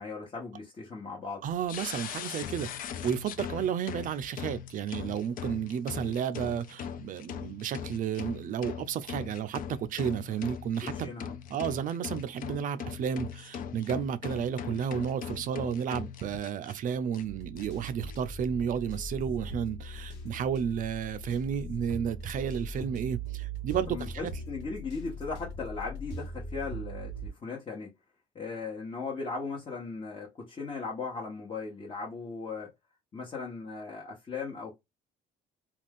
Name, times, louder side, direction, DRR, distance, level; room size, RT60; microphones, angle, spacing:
voice 1, 0.0-1.5 10.8-11.3 23.9-27.9 28.3-32.7 33.1-34.8, left 4 dB, 30° left, 0.9 m, -38 dB
voice 2, 1.4-11.1 11.5-24.3, right 8 dB, 50° right, 0.4 m, -32 dB
sound 1, 1.7-16.7 17.1-17.2 17.6-18.1, left 8 dB, 55° left, 0.4 m, -40 dB
sound 2, 17.2-27.3, right 1 dB, 85° left, 1.1 m, -40 dB
2.4 x 2.3 x 3.4 m
cardioid pair, 110°, 17 cm